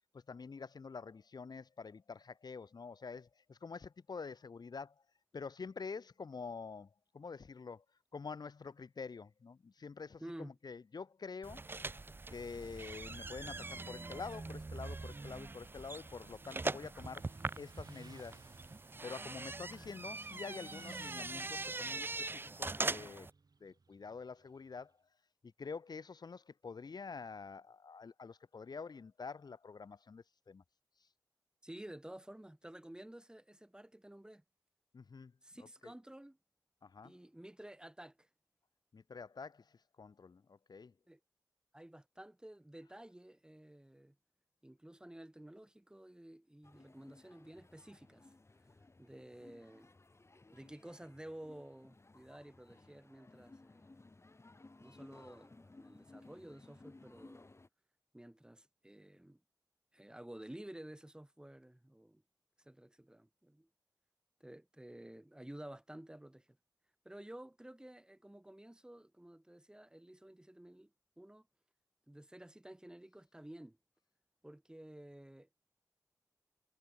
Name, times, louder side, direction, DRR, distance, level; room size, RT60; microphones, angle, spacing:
voice 1, 0.1-5.0 5.3-7.8 8.1-11.6 12.3-18.5 19.0-23.3 23.6-24.9 25.4-30.6 34.9-35.9 36.8-37.1 38.9-40.9, left 5 dB, 80° left, 0.7 m, -47 dB
voice 2, 10.2-10.5 31.6-34.4 35.4-36.4 37.0-38.3 41.1-41.2 41.7-44.2 44.6-48.3 49.0-49.9 50.5-53.9 54.8-57.4 58.1-59.4 59.9-62.2 62.6-63.7 64.4-66.6 67.0-70.9 71.2-71.5 72.1-73.8 74.4-75.5, right 1 dB, 10° right, 0.8 m, -52 dB
sound 1, 11.4-23.3, right 3 dB, 30° right, 0.4 m, -42 dB
Motorcycle, 16.0-24.8, right 4 dB, 70° right, 1.3 m, -59 dB
sound 2, 46.6-57.7, left 2 dB, 40° left, 1.9 m, -60 dB
wide cardioid pair, 80°, 7 cm